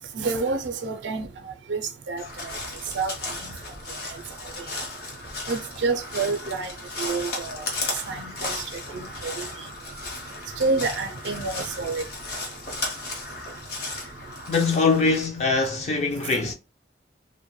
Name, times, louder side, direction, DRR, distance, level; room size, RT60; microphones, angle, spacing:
voice 1, 0.2-1.3 1.7-2.5 2.9-3.1 3.4-3.5 5.5-6.7 7.0-7.7 8.1-8.5 8.9-9.5 10.6-12.0, right 4 dB, 70° right, 0.4 m, -28 dB
Crow, 2.2-15.3, left 2 dB, 55° left, 0.8 m, -35 dB
voice 2, 14.5-16.5, left 4 dB, 35° left, 0.4 m, -22 dB
2.1 x 2.1 x 3.0 m
head